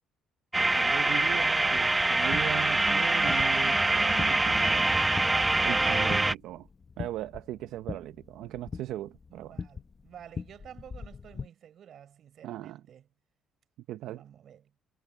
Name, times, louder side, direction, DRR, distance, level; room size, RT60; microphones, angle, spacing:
sound 1, 0.5-6.3, right 2 dB, 15° right, 1.0 m, -25 dB
voice 1, 0.6-5.0 5.6-6.7 7.0-9.6 12.4-12.8 13.9-14.2, right 14 dB, 75° right, 0.8 m, -38 dB
sound 2, 1.7-11.5, left 5 dB, 35° left, 1.2 m, -43 dB
voice 2, 9.3-13.1 14.1-14.7, right 9 dB, 60° right, 4.6 m, -51 dB
supercardioid pair, 80°, 0 cm